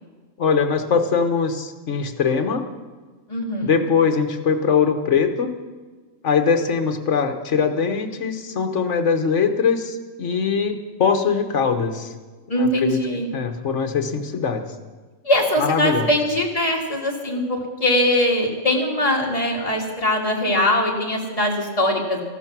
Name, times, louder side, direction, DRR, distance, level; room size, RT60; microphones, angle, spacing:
voice 1, 0.4-2.6 3.6-5.5 6.2-12.1 12.6-13.0 13.3-14.6 15.6-16.1, left 6 dB, 65° left, 7 dB, 1.4 m, -21 dB
voice 2, 3.3-3.8 12.5-13.3 15.2-22.2, left 1 dB, 25° left, -1 dB, 2.2 m, -21 dB
14.5 x 12.5 x 6.0 m, 1.4 s
omnidirectional pair, 1.3 m